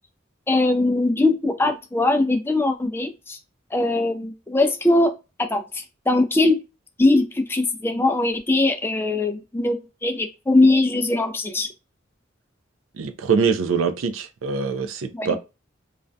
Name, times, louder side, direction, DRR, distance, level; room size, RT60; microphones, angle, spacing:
voice 1, 0.5-3.4 3.7-6.6 7.0-11.7 15.1-15.4, left 2 dB, 10° left, 0.3 m, -21 dB
voice 2, 13.0-15.4, right 5 dB, 85° right, 0.4 m, -23 dB
2.3 x 2.1 x 2.5 m
head